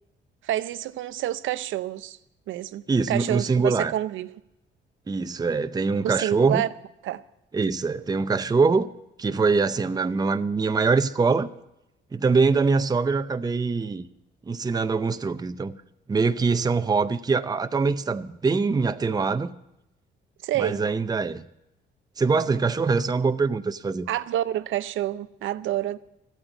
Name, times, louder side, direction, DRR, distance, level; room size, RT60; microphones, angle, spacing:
voice 1, 0.4-2.2 2.5-4.3 6.0-6.7 7.0-7.2 20.4-20.8 24.1-26.0, right 12 dB, 75° right, 0.6 m, -28 dB
voice 2, 2.9-3.9 5.1-6.6 7.5-8.9 9.2-11.5 12.1-14.1 14.5-15.8 16.1-19.5 20.6-21.5 22.2-24.1, right 4 dB, 20° right, 0.6 m, -23 dB
13.0 x 8.9 x 8.0 m
cardioid pair, 90°, 20 cm